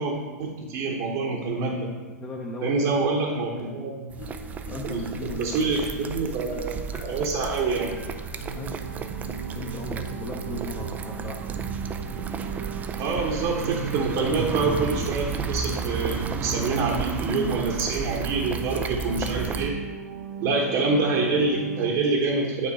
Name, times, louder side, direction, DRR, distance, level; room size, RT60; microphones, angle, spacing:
voice 1, 0.0-1.9 2.6-4.1 4.8-5.0 5.4-8.0 13.0-19.8 20.4-22.7, right 3 dB, 40° right, -1 dB, 1.1 m, -26 dB
voice 2, 2.2-2.8 4.7-6.1 6.5-6.7 8.6-8.8 9.5-11.6, left 2 dB, 20° left, -2 dB, 0.9 m, -37 dB
Marimba xylophone, 2.8-3.7 4.2-9.7, left 4 dB, 80° left, 1.6 m, -44 dB
sound 1, 4.1-19.7, right 6 dB, 15° right, 0.4 m, -32 dB
sound 2, 8.4-21.9, right 5 dB, 80° right, 0.9 m, -38 dB
8.8 x 3.7 x 5.0 m, 1.4 s
hypercardioid pair, 115°, 9 cm